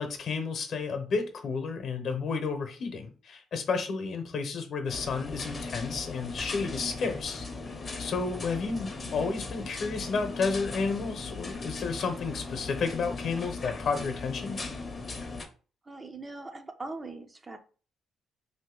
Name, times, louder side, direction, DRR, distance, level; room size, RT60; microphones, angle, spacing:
voice 1, 0.0-7.4 8.0-14.6, left 4 dB, 60° left, 0.8 m, -31 dB
sound 1, 4.9-15.5, left 3 dB, 30° left, 0.6 m, -38 dB
voice 2, 8.4-8.9 15.8-17.6, right 2 dB, 25° right, 0.5 m, -42 dB
sound 2, 8.7-12.7, right 3 dB, 65° right, 0.9 m, -55 dB
2.7 x 2.6 x 3.8 m
cardioid pair, 90°, 0 cm